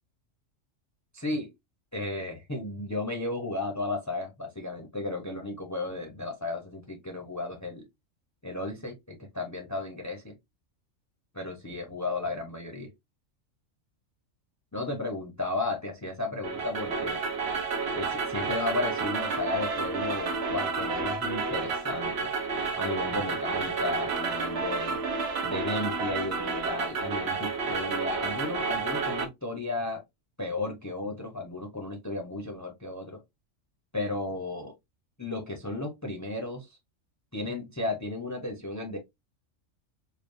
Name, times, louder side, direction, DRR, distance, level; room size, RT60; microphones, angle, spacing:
voice 1, 1.1-1.5 1.9-7.9 8.4-10.3 11.3-12.9 14.7-17.2 17.9-22.3 22.8-25.0 25.4-30.0 30.4-33.2 33.9-34.7 35.2-36.8 37.3-39.0, left 2 dB, 15° left, 0.7 m, -34 dB
sound 1, 16.4-29.3, right 4 dB, 60° right, 1.0 m, -30 dB
5.0 x 2.4 x 2.6 m
omnidirectional pair, 1.3 m